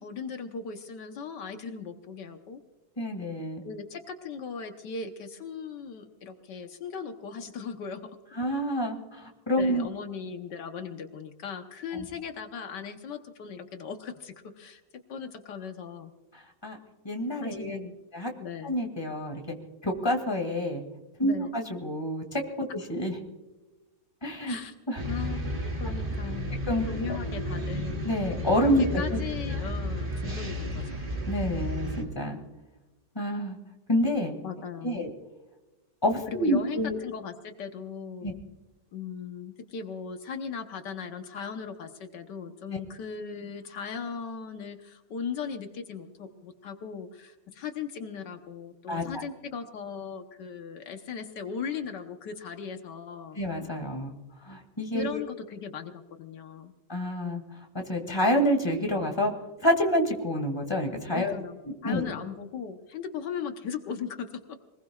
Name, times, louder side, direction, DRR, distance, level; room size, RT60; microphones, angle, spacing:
voice 1, 0.0-2.6 3.7-8.1 9.5-16.1 17.4-18.0 18.4-18.8 21.2-21.5 24.5-24.7 25.1-26.6 26.9-28.0 28.6-31.0 34.4-35.1 36.3-38.4 38.9-53.4 54.9-56.7 61.1-64.6, left 6 dB, 80° left, 6 dB, 1.7 m, -38 dB
voice 2, 3.0-3.6 8.4-9.9 11.9-12.0 16.3-16.8 17.0-17.8 18.1-18.3 18.6-19.5 19.8-20.8 21.2-23.1 24.2-24.6 24.9-25.0 26.7-27.2 28.0-29.2 31.3-32.4 33.1-33.6 33.9-34.3 34.8-35.1 36.0-37.0 38.2-38.3 48.9-49.2 53.3-54.1 54.4-55.2 56.9-57.4 57.7-59.3 59.6-61.3 61.8-62.1, equal, 15° left, 3 dB, 2.4 m, -28 dB
sound 1, 25.0-32.0, equal, 30° right, 2.1 m, -32 dB
25.0 x 20.5 x 2.4 m, 1.1 s
omnidirectional pair, 1.9 m